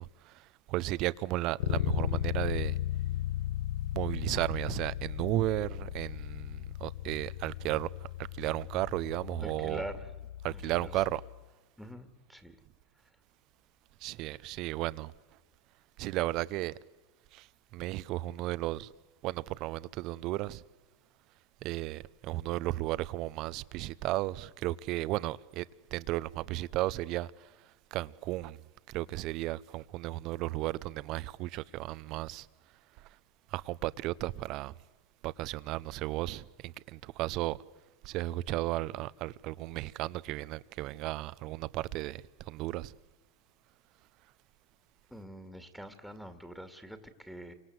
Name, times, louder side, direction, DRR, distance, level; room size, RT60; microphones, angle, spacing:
voice 1, 0.0-2.8 3.9-9.9 10.4-11.2 14.0-15.1 16.0-16.7 17.3-18.9 19.2-20.6 21.6-25.7 25.9-28.6 28.9-32.5 33.0-33.1 33.5-34.7 35.2-37.6 38.0-42.9, right 17 dB, 50° right, 0.9 m, -34 dB
Bass guitar, 1.6-11.4, left 12 dB, 80° left, 1.4 m, -36 dB
voice 2, 9.4-10.1 10.8-10.9 11.8-12.6 45.1-47.5, equal, ahead, 2.3 m, -44 dB
28.5 x 25.0 x 8.0 m
supercardioid pair, 130°, 0 cm